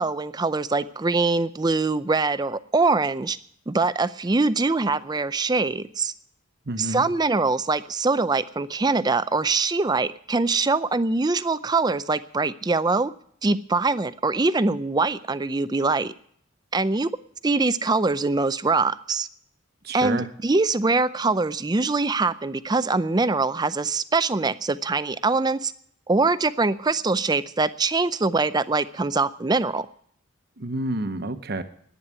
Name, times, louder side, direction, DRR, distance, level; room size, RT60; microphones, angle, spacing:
voice 1, 0.0-3.4 3.7-6.1 6.8-13.1 13.4-16.1 16.7-17.1 17.4-19.3 19.9-25.7 26.1-29.9, right 3 dB, 20° right, 15 dB, 0.5 m, -23 dB
voice 2, 6.7-7.0 19.8-20.3 30.6-31.6, right 2 dB, 50° right, 9 dB, 1.0 m, -29 dB
11.0 x 9.6 x 9.9 m, 0.65 s
head